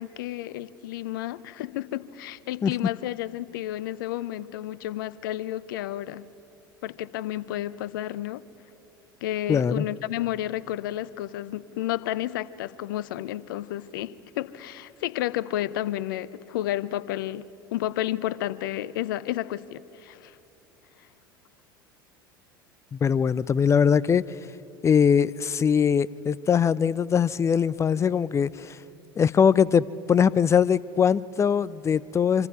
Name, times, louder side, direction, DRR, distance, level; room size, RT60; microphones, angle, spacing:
voice 1, 0.0-6.2 6.8-8.4 9.2-20.4, left 14 dB, 65° left, 0.7 m, -31 dB
voice 2, 9.5-9.9 22.9-24.2 24.8-28.8 29.2-32.5, left 7 dB, 25° left, 0.5 m, -21 dB
26.0 x 25.5 x 4.7 m
figure-of-eight pair, 75°, 12 cm